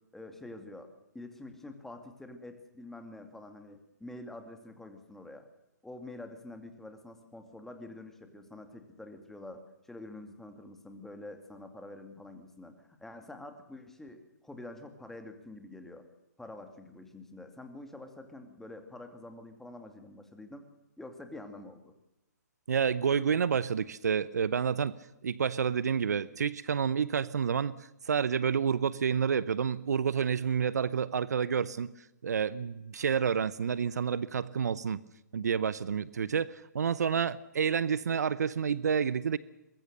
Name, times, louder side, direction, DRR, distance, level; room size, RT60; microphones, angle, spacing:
voice 1, 0.1-5.5 5.8-16.1 16.4-20.7 21.0-21.9, left 2 dB, 5° left, 6 dB, 2.5 m, -47 dB
voice 2, 22.7-31.9 32.2-35.0 35.3-39.4, right 7 dB, 65° right, 18 dB, 0.9 m, -29 dB
23.5 x 21.5 x 6.7 m, 0.90 s
figure-of-eight pair, 135°, 10 cm